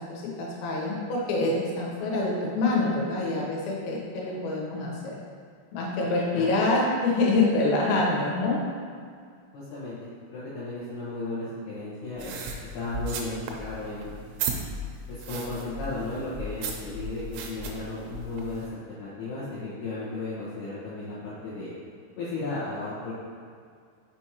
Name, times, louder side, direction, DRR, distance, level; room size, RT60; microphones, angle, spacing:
voice 1, 0.0-5.2 5.7-8.6, left 2 dB, 90° left, -3 dB, 3.8 m, -26 dB
voice 2, 9.5-10.0 10.3-12.4 12.7-14.1 15.1-21.7 22.2-23.1, left 2 dB, 70° left, -10 dB, 2.6 m, -35 dB
sound 1, 12.2-18.7, right 3 dB, 85° right, 3.3 m, -36 dB
6.3 x 6.2 x 2.9 m, 2.2 s
omnidirectional pair, 5.8 m